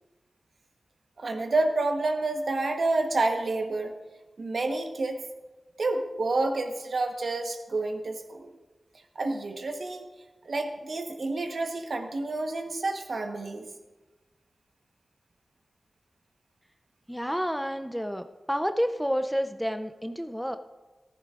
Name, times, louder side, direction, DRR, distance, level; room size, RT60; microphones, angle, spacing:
voice 1, 1.2-4.0 4.4-5.2 5.8-8.5 9.1-10.0 10.4-13.6, right 2 dB, 65° right, 5 dB, 1.1 m, -29 dB
voice 2, 17.1-20.6, equal, ahead, 7 dB, 0.5 m, -29 dB
14.5 x 14.0 x 2.5 m, 1.1 s
wide cardioid pair, 95°, 0 cm